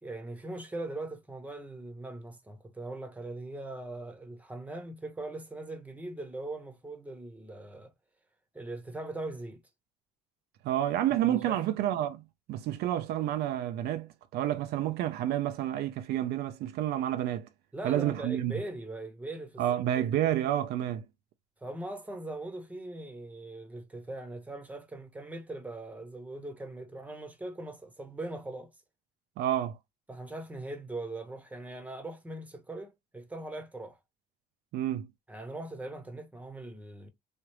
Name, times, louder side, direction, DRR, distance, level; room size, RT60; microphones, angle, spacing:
voice 1, 0.0-7.9 8.5-9.6 11.2-11.6 17.7-19.6 19.9-20.1 21.6-28.7 30.1-34.0 35.3-37.1, right 2 dB, 10° right, 0.8 m, -40 dB
voice 2, 10.6-12.2 12.5-17.5 17.8-18.5 19.6-21.0 29.4-29.8 34.7-35.1, right 12 dB, 75° right, 0.4 m, -29 dB
3.2 x 2.4 x 2.9 m
cardioid pair, 110°, 17 cm